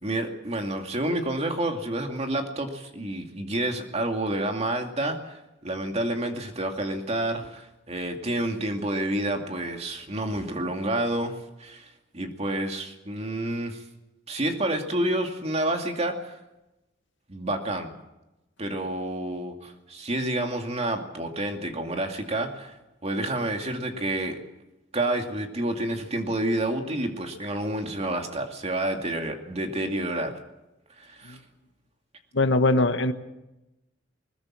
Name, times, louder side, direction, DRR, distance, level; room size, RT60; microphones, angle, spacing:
voice 1, 0.0-11.3 11.6-13.8 14.3-16.3 17.3-17.9 18.6-22.7 23.0-24.4 24.9-30.3 31.0-31.4, right 1 dB, 35° right, 4 dB, 2.4 m, -29 dB
voice 2, 32.3-33.1, left 2 dB, 70° left, 10 dB, 1.3 m, -21 dB
20.5 x 20.5 x 7.5 m, 0.96 s
head